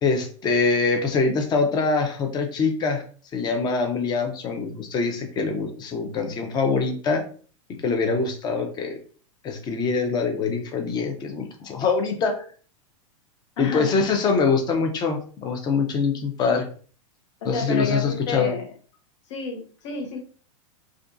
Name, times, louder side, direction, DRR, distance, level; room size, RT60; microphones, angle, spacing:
voice 1, 0.0-3.0 3.3-7.2 7.8-9.0 9.4-12.4 13.6-16.7 17.4-18.5, left 4 dB, 25° left, 5 dB, 0.6 m, -24 dB
voice 2, 13.6-13.9 17.5-18.7 19.3-20.2, left 3 dB, 65° left, 3 dB, 0.8 m, -29 dB
2.5 x 2.3 x 2.5 m, 0.42 s
hypercardioid pair, 125°, 17 cm